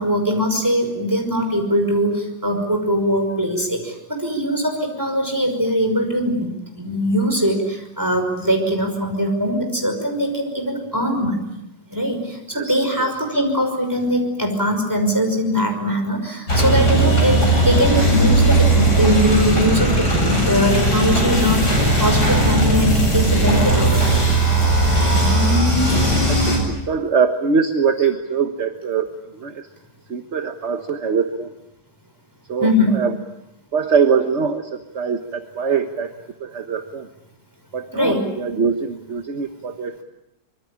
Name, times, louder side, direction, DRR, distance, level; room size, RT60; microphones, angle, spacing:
voice 1, 0.0-11.5 11.9-17.4 17.6-21.7 22.0-24.2 32.6-33.0 37.9-38.2, equal, 10° right, 3 dB, 5.7 m, -21 dB
voice 2, 12.5-13.1 26.3-29.1 29.3-29.7 30.1-31.5 32.5-33.2 33.7-36.1 36.4-37.1 37.7-40.0, right 6 dB, 45° right, 7 dB, 1.5 m, -23 dB
sound 1, 16.5-26.6, right 1 dB, 75° left, 8.6 m, -17 dB
25.5 x 23.5 x 8.6 m, 0.85 s
omnidirectional pair, 1.8 m